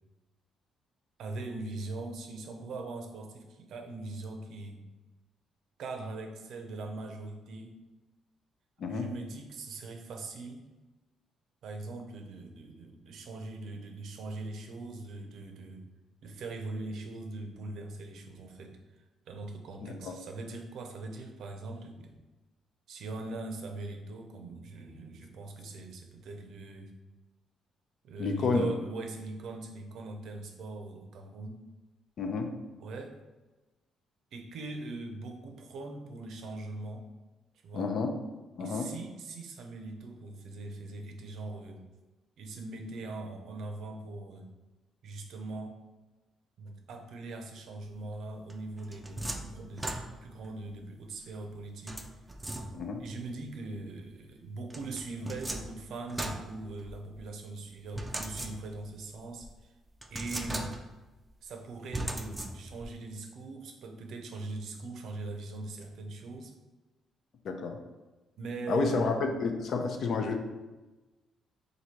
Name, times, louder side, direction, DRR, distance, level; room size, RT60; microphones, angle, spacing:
voice 1, 1.2-4.8 5.8-7.7 8.9-10.7 11.6-15.9 16.2-18.8 19.3-22.2 22.9-26.9 28.0-31.6 32.8-33.1 34.3-37.1 37.6-37.9 38.6-41.9 42.4-44.5 45.0-45.8 46.6-52.0 53.0-59.5 60.1-60.7 61.4-66.5 68.4-69.1, right 3 dB, 75° right, 4 dB, 0.6 m, -41 dB
voice 2, 19.8-20.2 28.2-28.7 32.2-32.5 37.7-38.1 38.6-38.9 52.7-53.0 67.4-67.8 68.7-70.4, left 4 dB, 65° left, 4 dB, 0.5 m, -30 dB
sound 1, 48.5-50.5 51.9-53.1 54.7-57.2 58.0-59.0 59.4-59.5 60.0-61.1 61.9-62.9, right 1 dB, 15° right, 0.4 m, -38 dB
2.9 x 2.6 x 4.3 m, 1.1 s
cardioid pair, 90°, 0 cm